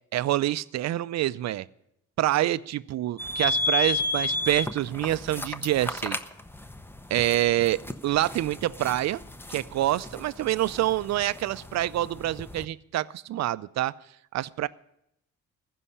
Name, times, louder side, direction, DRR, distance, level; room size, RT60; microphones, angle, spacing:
voice 1, 0.1-1.7 2.2-6.2 7.1-9.2 9.5-13.9 14.3-14.7, right 14 dB, 60° right, 18 dB, 0.5 m, -26 dB
sound 1, 3.2-12.7, left 2 dB, 5° left, 0.7 m, -33 dB
14.5 x 5.6 x 9.8 m, 0.80 s
cardioid pair, 90°, 30 cm